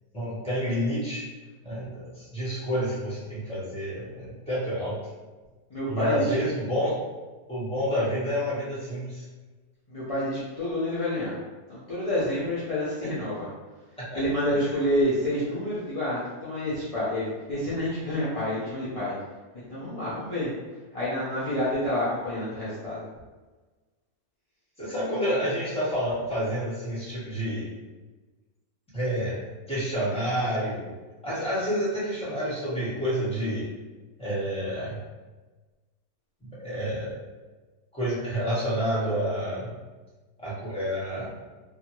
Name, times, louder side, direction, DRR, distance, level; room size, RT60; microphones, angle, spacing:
voice 1, 0.1-1.3 1.6-5.0 5.9-7.0 7.5-9.2 13.0-13.3 14.0-14.2 14.5-14.6 24.8-27.7 28.9-29.3 29.7-30.9 31.2-33.7 34.2-35.0 36.4-37.1 37.9-39.7 40.4-41.3, equal, 5° left, -10 dB, 0.9 m, -29 dB
voice 2, 5.7-6.3 9.9-11.4 11.7-13.5 14.1-19.1 19.7-20.5 20.9-23.1, left 1 dB, 45° left, -11 dB, 0.4 m, -28 dB
2.7 x 2.4 x 2.9 m, 1.3 s
omnidirectional pair, 1.6 m